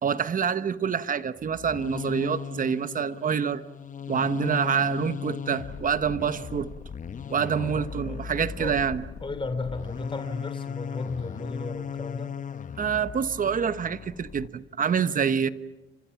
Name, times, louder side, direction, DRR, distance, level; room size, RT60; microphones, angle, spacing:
voice 1, 0.0-3.6 4.1-6.7 7.3-9.0 12.8-15.5, right 7 dB, 45° right, 13 dB, 1.1 m, -26 dB
sound 1, 1.4-14.5, left 7 dB, 40° left, 1.0 m, -37 dB
voice 2, 7.5-8.2 8.6-8.8 9.2-12.3, left 3 dB, 25° left, 8 dB, 3.4 m, -34 dB
29.5 x 26.0 x 5.9 m, 1.1 s
cardioid pair, 90°, 20 cm